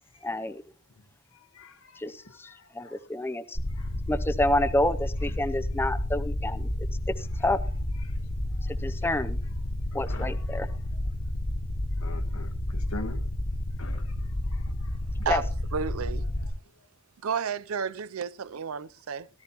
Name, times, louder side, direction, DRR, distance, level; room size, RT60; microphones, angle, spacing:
voice 1, 0.2-0.6 2.0-2.5 2.7-3.6 4.1-6.7 7.1-7.6 8.7-9.4 9.9-10.7 15.3-15.4, left 1 dB, 10° left, 0.6 m, -28 dB
sound 1, 3.5-16.5, left 1 dB, 45° left, 1.5 m, -31 dB
voice 2, 12.0-13.2 13.8-14.0, left 2 dB, 75° left, 1.4 m, -40 dB
voice 3, 15.7-16.3 17.2-19.3, right 6 dB, 85° right, 0.5 m, -31 dB
17.0 x 12.5 x 3.0 m
head